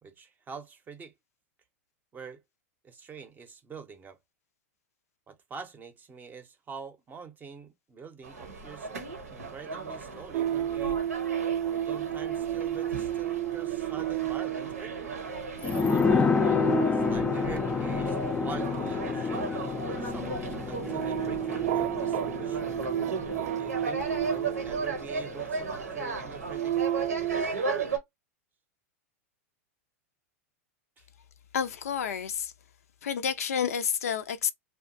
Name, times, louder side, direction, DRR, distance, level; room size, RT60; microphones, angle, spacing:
voice 1, 0.0-1.1 2.1-2.4 2.8-4.2 5.3-8.9 9.3-11.0 11.6-15.1 16.8-20.3 20.7-22.6 23.5-27.6 31.0-31.1, right 5 dB, 20° right, 0.6 m, -46 dB
sound 1, 8.2-28.0, right 4 dB, 85° right, 0.8 m, -36 dB
sound 2, 10.3-25.5 26.1-27.4, right 11 dB, 60° right, 0.4 m, -32 dB
sound 3, 15.6-24.9 25.2-25.3, left 5 dB, 15° left, 0.4 m, -29 dB
voice 2, 31.5-32.5 33.0-34.5, left 7 dB, 80° left, 0.4 m, -29 dB
2.8 x 2.2 x 2.5 m
hypercardioid pair, 100°, 8 cm